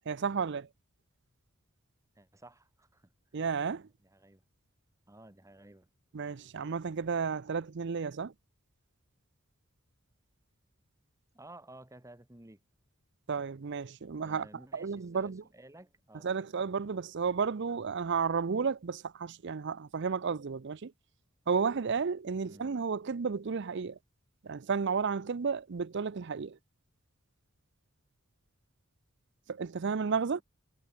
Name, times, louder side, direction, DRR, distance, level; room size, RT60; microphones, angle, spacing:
voice 1, 0.1-0.7 3.3-3.9 6.1-8.3 13.3-14.5 14.7-15.4 16.2-20.9 21.5-24.0 24.4-26.6 29.5-30.4, right 5 dB, 55° right, 0.5 m, -32 dB
voice 2, 2.2-3.1 4.0-4.4 5.1-5.9 11.3-12.6 14.1-16.5 22.4-22.7, right 1 dB, 15° right, 1.9 m, -54 dB
head